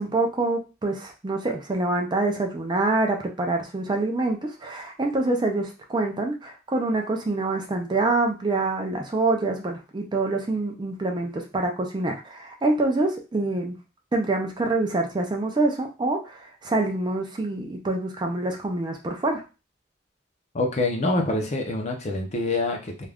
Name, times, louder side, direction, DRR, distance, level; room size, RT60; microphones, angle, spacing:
voice 1, 0.0-13.8 14.1-19.4, right 2 dB, 20° right, 2 dB, 0.4 m, -26 dB
voice 2, 20.5-23.1, left 2 dB, 35° left, 2 dB, 0.5 m, -26 dB
2.4 x 2.2 x 3.4 m, 0.31 s
head